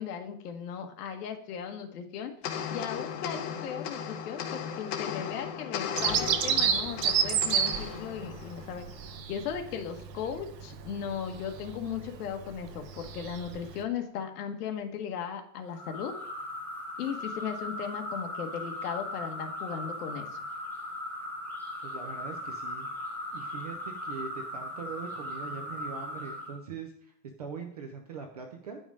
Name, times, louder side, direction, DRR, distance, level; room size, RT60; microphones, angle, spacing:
voice 1, 0.0-2.3 2.7-8.9 9.3-16.1 17.0-20.4, left 8 dB, 65° left, 5 dB, 1.5 m, -37 dB
sound 1, 2.4-9.1, left 8 dB, 35° left, 0.9 m, -37 dB
Bird vocalization bird call bird song, 6.0-13.8, right 8 dB, 80° right, 1.2 m, -31 dB
sound 2, 15.7-26.6, left 1 dB, 5° left, 1.1 m, -38 dB
voice 2, 21.8-22.9 23.3-28.8, right 5 dB, 30° right, 4 dB, 0.3 m, -42 dB
10.0 x 5.3 x 4.8 m, 0.69 s
supercardioid pair, 165°, 49 cm